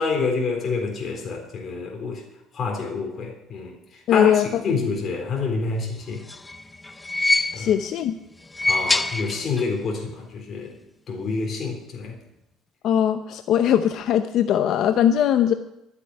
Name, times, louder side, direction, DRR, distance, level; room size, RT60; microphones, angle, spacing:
voice 1, 0.0-2.2 2.5-3.7 4.1-4.3 4.6-6.2 7.5-7.7 8.7-10.8 11.1-12.2, left 4 dB, 35° left, 2 dB, 3.9 m, -27 dB
voice 2, 4.1-4.6 7.6-8.1 12.8-15.5, left 10 dB, 55° left, 8 dB, 0.7 m, -20 dB
sound 1, 6.0-7.9 8.4-9.8 10.1-10.2 11.3-11.4, left 2 dB, 10° left, 0.6 m, -25 dB
12.5 x 8.3 x 9.8 m, 0.85 s
cardioid pair, 150°, 0 cm